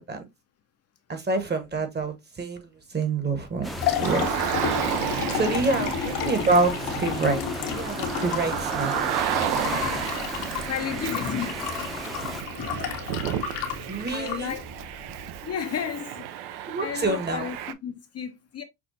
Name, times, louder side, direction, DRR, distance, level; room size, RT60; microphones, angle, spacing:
voice 1, 1.1-4.3 5.3-9.2 13.9-14.5 16.7-17.5, right 3 dB, 25° right, 1.1 m, -27 dB
Liquid, 3.4-15.4, left 7 dB, 75° left, 1.1 m, -32 dB
sound 1, 3.6-12.4, equal, ahead, 0.6 m, -37 dB
Car, 4.0-17.7, right 11 dB, 70° right, 0.6 m, -32 dB
voice 2, 5.4-5.9 9.3-9.8 10.7-12.1 12.6-13.1 14.1-14.9 15.4-16.3 16.6-18.6, left 8 dB, 35° left, 0.6 m, -34 dB
6.0 x 2.3 x 2.6 m
supercardioid pair, 85°, 42 cm